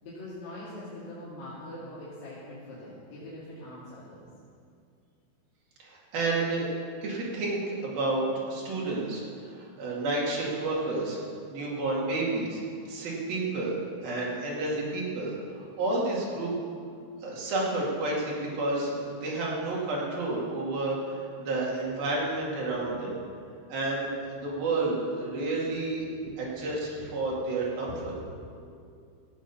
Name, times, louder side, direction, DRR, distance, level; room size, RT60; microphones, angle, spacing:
voice 1, 0.0-4.3 21.8-22.1 22.6-22.8 23.1-23.2 23.5-23.6 25.7-25.8 26.2-26.4 27.0-27.1 27.9-28.0 28.4-28.8, left 1 dB, 50° left, -10 dB, 3.7 m, -43 dB
voice 2, 5.8-6.7 7.0-11.2 11.5-12.6 12.9-16.5 17.2-23.2 23.7-26.1 26.6-28.1, right 2 dB, 55° right, -4 dB, 4.0 m, -30 dB
15.0 x 9.0 x 7.3 m, 2.3 s
omnidirectional pair, 5.6 m